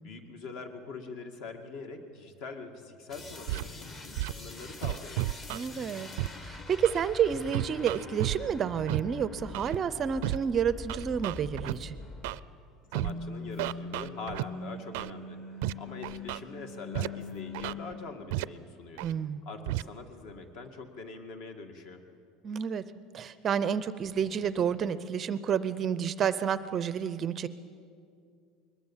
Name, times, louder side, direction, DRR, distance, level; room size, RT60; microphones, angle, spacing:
voice 1, 0.0-5.3 12.9-19.0 19.5-22.0, left 4 dB, 55° left, 6 dB, 2.1 m, -43 dB
sound 1, 3.1-12.6 12.9-17.9, left 3 dB, 25° left, 1.1 m, -43 dB
Scratching (performance technique), 3.5-3.6 4.2-4.3 4.8-5.6 6.2-6.3 6.8-7.0 7.5-8.4 8.9-9.0 9.5-9.8 10.2-10.4 10.9-11.7 12.2-12.4 12.9-13.1 13.6-14.4 14.9-15.1 15.6-15.7 16.0-16.4 16.9-17.1 17.5-17.7 18.3-18.4 19.0-19.1 19.7-19.8, right 19 dB, 75° right, 0.4 m, -32 dB
voice 2, 5.5-6.1 6.4-12.0 19.0-19.4 22.4-22.8 23.1-27.5, right 7 dB, 25° right, 14 dB, 0.5 m, -30 dB
21.5 x 21.0 x 7.3 m, 2.3 s
cardioid pair, 170°, 0 cm